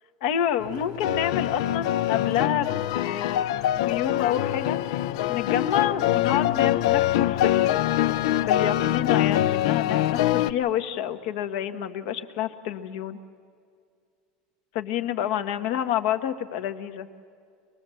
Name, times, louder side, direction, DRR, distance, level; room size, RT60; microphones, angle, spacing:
voice 1, 0.2-3.5 3.7-4.9 5.3-7.8 8.3-13.2 14.7-17.1, left 10 dB, 70° left, 8 dB, 1.3 m, -28 dB
sound 1, 0.6-10.5, left 13 dB, 85° left, 0.6 m, -24 dB
25.0 x 20.0 x 7.7 m, 2.2 s
cardioid pair, 160°, 3 cm